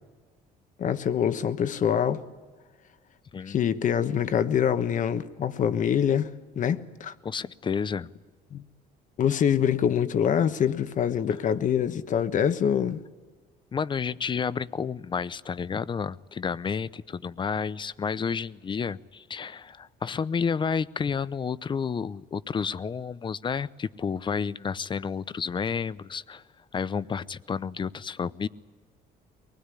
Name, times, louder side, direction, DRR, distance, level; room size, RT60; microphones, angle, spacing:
voice 1, 0.8-2.2 3.5-6.3 6.5-7.1 8.5-8.6 9.2-13.0, left 8 dB, 50° left, 1.2 m, -25 dB
voice 2, 3.3-3.6 7.2-8.1 13.7-26.4 26.7-28.5, left 6 dB, 30° left, 0.7 m, -30 dB
23.5 x 20.0 x 9.9 m
cardioid pair, 110°, 17 cm